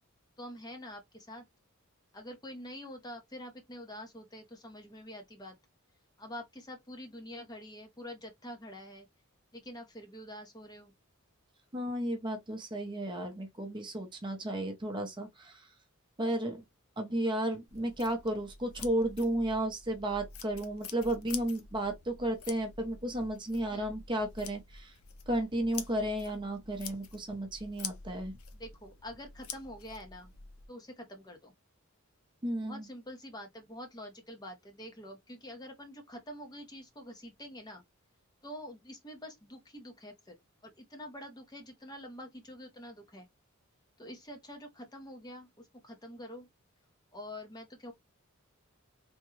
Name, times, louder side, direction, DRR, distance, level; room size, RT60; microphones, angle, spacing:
voice 1, 0.4-1.4 2.1-5.6 6.2-9.1 9.5-10.9 23.7-23.9 28.5-30.3 30.7-31.5 32.6-37.8 38.4-40.4 40.6-43.3 44.0-46.5 47.1-47.9, left 1 dB, 20° left, 0.7 m, -46 dB
voice 2, 11.7-15.7 16.2-16.6 17.0-24.9 25.3-28.3 32.4-32.9, right 1 dB, 20° right, 0.6 m, -33 dB
sound 1, 17.7-30.7, left 6 dB, 70° left, 0.7 m, -47 dB
3.5 x 2.2 x 3.0 m
head